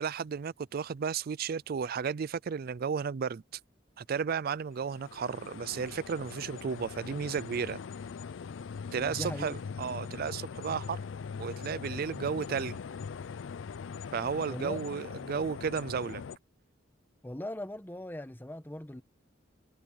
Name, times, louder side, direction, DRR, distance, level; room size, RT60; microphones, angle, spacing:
voice 1, 0.0-3.4 4.0-7.8 8.9-11.0 11.4-12.8 14.1-16.2, right 6 dB, 55° right, 0.4 m, -33 dB
sound 1, 4.8-16.4, left 6 dB, 90° left, 0.4 m, -41 dB
voice 2, 9.0-9.6 14.5-14.8 17.2-19.0, left 1 dB, 10° left, 1.1 m, -39 dB
head